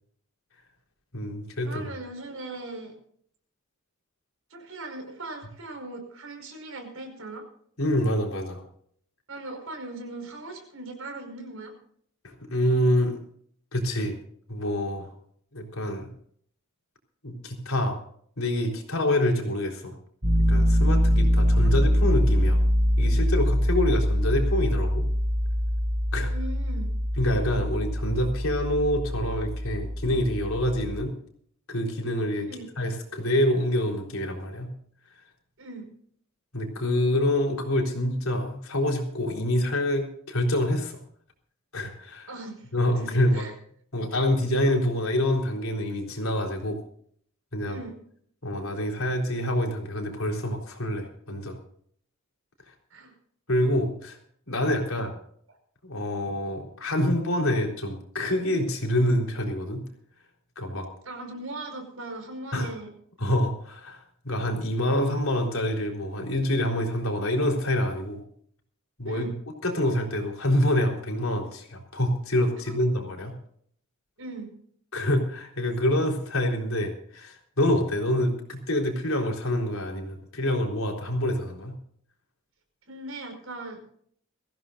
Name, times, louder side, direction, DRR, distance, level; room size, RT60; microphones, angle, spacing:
voice 1, 1.1-1.8 7.8-8.6 12.2-13.1 13.7-14.2 14.5-15.1 15.5-16.1 17.2-18.0 18.4-19.9 20.5-22.6 23.0-25.1 26.1-26.3 27.2-31.1 31.7-32.5 32.8-34.7 36.5-41.0 41.7-42.3 42.7-43.4 43.9-46.8 47.5-47.8 48.4-51.6 53.5-54.2 54.5-55.1 55.8-59.8 60.6-60.9 62.5-62.7 63.2-68.2 69.0-69.3 69.6-73.3 74.9-81.8, left 1 dB, 75° left, 1 dB, 3.9 m, -26 dB
voice 2, 1.6-2.9 4.5-7.4 9.3-11.7 21.6-21.7 26.2-26.9 32.4-32.7 35.6-35.9 42.3-42.7 43.0-43.5 47.7-48.0 52.9-53.1 54.9-55.0 61.1-62.9 69.1-69.3 72.7-72.8 74.2-74.5 82.9-83.8, right 2 dB, 75° right, 4 dB, 5.2 m, -39 dB
Piano, 20.2-31.1, equal, 45° right, 3.6 m, -24 dB
22.5 x 15.5 x 2.6 m, 0.62 s
head